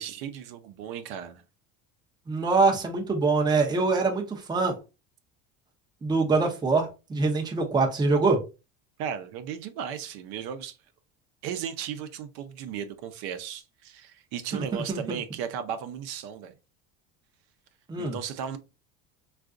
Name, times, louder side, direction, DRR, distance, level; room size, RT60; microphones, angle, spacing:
voice 1, 0.0-1.4 9.0-10.7 11.4-16.5 18.0-18.6, right 8 dB, 70° right, 0.7 m, -35 dB
voice 2, 2.3-4.7 6.0-8.4 14.5-15.2 17.9-18.2, right 3 dB, 10° right, 0.6 m, -24 dB
3.6 x 2.4 x 2.4 m
cardioid pair, 125°, 38 cm